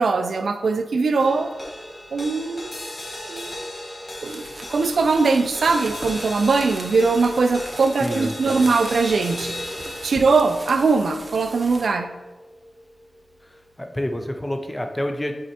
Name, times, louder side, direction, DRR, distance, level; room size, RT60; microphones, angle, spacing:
voice 1, 0.0-1.5 2.1-2.7 3.3-3.5 4.2-4.4 4.7-9.6 10.0-12.1, right 4 dB, 90° right, 7 dB, 0.3 m, -21 dB
sound 1, 1.2-13.7, left 1 dB, 50° left, 1.3 m, -36 dB
sound 2, 4.2-11.9, right 1 dB, 35° right, 0.7 m, -40 dB
voice 2, 8.0-8.7 13.4-15.3, left 1 dB, 15° left, 4 dB, 0.6 m, -29 dB
8.1 x 4.3 x 2.8 m, 1.2 s
wide cardioid pair, 80°, 0 cm